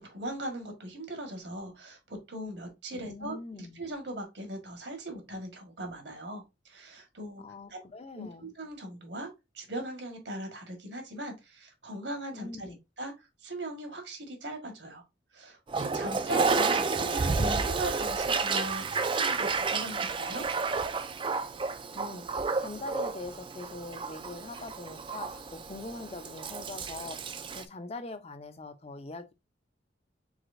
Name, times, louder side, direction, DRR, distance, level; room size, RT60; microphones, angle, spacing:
voice 1, 0.0-7.4 7.7-7.8 8.1-9.3 9.5-12.7 13.0-13.1 13.4-15.0 15.3-16.8 17.2-20.4, right 1 dB, 70° right, 1.5 m, -39 dB
voice 2, 2.9-3.8 7.4-8.5 12.3-12.8 16.0-16.4 16.8-17.2 21.9-22.3 22.6-29.3, left 2 dB, 35° left, 0.6 m, -43 dB
Toilet flush, 15.7-27.6, right 4 dB, 25° right, 0.4 m, -31 dB
4.8 x 4.1 x 2.6 m
head